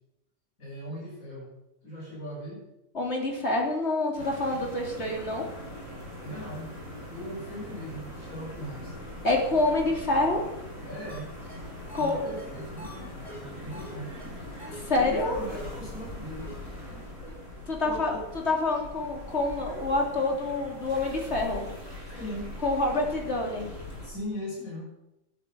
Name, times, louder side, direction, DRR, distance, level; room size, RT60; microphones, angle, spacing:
voice 1, 0.6-1.5 1.8-2.6 6.2-6.7 7.1-8.9 10.8-11.3 11.9-12.9 13.6-14.2 14.9-16.5 17.8-18.2 22.1-22.5 24.0-24.9, equal, 90° left, -5 dB, 7.6 m, -39 dB
voice 2, 2.9-5.5 9.2-10.4 11.9-12.2 14.7-15.4 17.7-18.1 18.5-21.7 22.6-23.7, left 2 dB, 50° left, 1 dB, 3.6 m, -27 dB
sound 1, 4.2-24.1, left 1 dB, 70° left, 7.0 m, -41 dB
sound 2, 11.1-11.2 11.5-11.6 11.9-13.9 14.2-14.3 14.6-14.8 15.1-15.2 15.5-15.7 16.0-16.1 16.4-16.5 16.9-17.0 17.3-17.4, left 1 dB, ahead, 5.1 m, -45 dB
12.5 x 11.5 x 9.0 m, 0.89 s
omnidirectional pair, 1.4 m